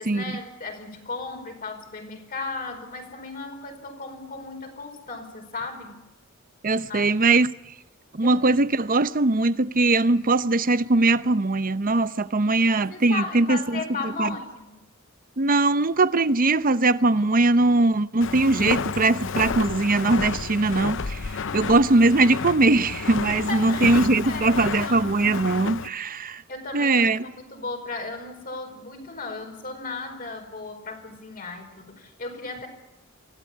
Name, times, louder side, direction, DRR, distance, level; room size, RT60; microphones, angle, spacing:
voice 1, 0.0-6.0 6.7-7.1 8.2-8.4 12.8-14.8 21.3-21.7 23.2-25.0 26.5-32.7, left 3 dB, 45° left, 5.0 m, -36 dB
voice 2, 6.6-7.5 8.1-13.8 14.2-14.3 15.4-21.2 21.5-26.4 26.7-27.2, right 2 dB, 40° right, 0.8 m, -21 dB
Walk footsteps, 18.2-25.9, left 5 dB, 60° left, 0.7 m, -31 dB
25.0 x 16.5 x 8.5 m
head